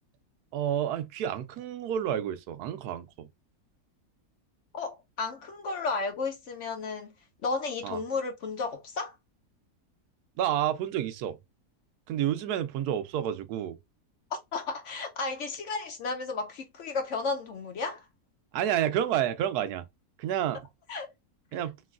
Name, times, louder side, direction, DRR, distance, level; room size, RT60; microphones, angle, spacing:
voice 1, 0.5-3.3 7.8-8.0 10.4-11.4 12.1-13.8 18.5-19.8 20.2-20.6 21.5-21.8, right 10 dB, 80° right, 1.1 m, -29 dB
voice 2, 4.7-7.1 7.4-9.1 14.5-18.0 20.9-21.1, left 4 dB, 60° left, 0.9 m, -33 dB
3.1 x 3.0 x 2.3 m
omnidirectional pair, 1.6 m